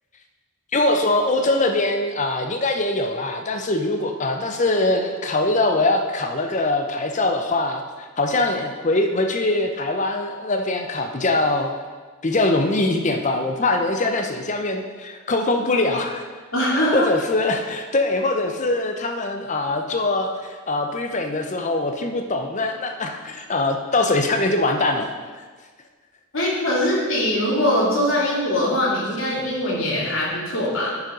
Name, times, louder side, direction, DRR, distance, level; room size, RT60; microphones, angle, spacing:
voice 1, 0.7-11.7 12.2-16.2 16.9-25.1, left 2 dB, 35° left, 5 dB, 0.7 m, -22 dB
voice 2, 16.5-17.1 26.3-30.9, left 1 dB, 70° left, -6 dB, 2.8 m, -22 dB
9.4 x 5.5 x 5.2 m, 1.4 s
head